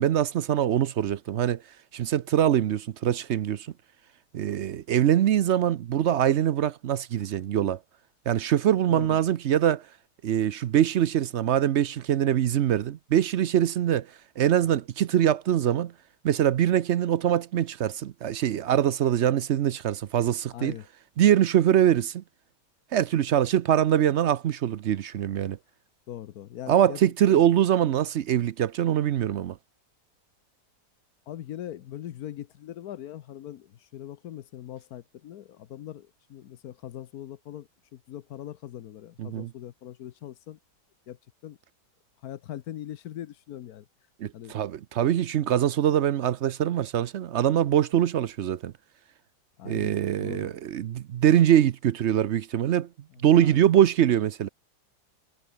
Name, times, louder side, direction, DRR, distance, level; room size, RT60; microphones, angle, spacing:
voice 1, 0.0-1.6 1.9-3.7 4.3-7.8 8.3-9.8 10.2-14.1 14.4-15.9 16.2-20.7 21.2-22.2 22.9-25.6 26.7-29.6 39.2-39.5 44.2-48.7 49.7-52.9 53.2-54.5, right 10 dB, 65° right, 0.7 m, -23 dB
voice 2, 8.9-9.2 20.5-20.9 26.1-27.4 31.3-40.6 41.1-41.6 42.2-43.9 44.3-44.5 45.5-45.6 45.9-46.0 49.6-49.9 50.2-50.5 53.1-53.7, left 11 dB, 65° left, 1.2 m, -41 dB
omnidirectional pair, 1.8 m